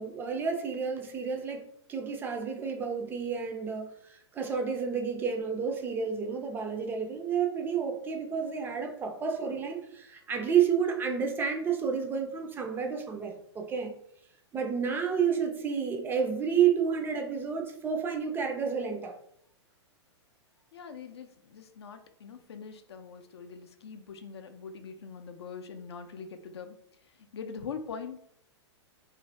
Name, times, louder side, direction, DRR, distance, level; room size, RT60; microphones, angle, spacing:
voice 1, 0.0-13.9 14.5-19.1, right 7 dB, 15° right, 3 dB, 0.4 m, -30 dB
voice 2, 20.7-26.8 27.2-28.2, left 6 dB, 60° left, 7 dB, 0.4 m, -43 dB
2.5 x 2.4 x 3.2 m, 0.70 s
figure-of-eight pair, 105°, 15 cm